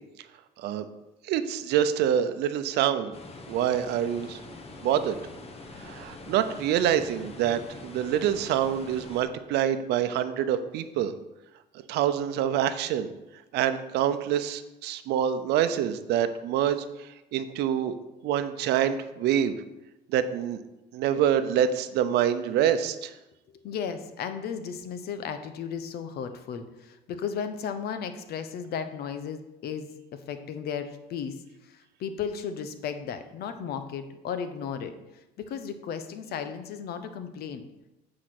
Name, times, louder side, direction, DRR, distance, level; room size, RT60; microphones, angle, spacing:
voice 1, 1.2-3.1 3.5-4.4 4.8-5.2 5.8-11.1 11.9-13.1 13.5-17.9 18.2-19.6 20.1-20.6 20.9-23.1, right 9 dB, 85° right, 10 dB, 0.7 m, -26 dB
sound 1, 3.1-9.2, left 2 dB, 35° left, 1.2 m, -44 dB
voice 2, 23.6-31.4 31.6-34.9 35.4-37.6, left 7 dB, 70° left, 9 dB, 0.9 m, -35 dB
8.3 x 4.9 x 6.0 m, 0.97 s
cardioid pair, 110°, 17 cm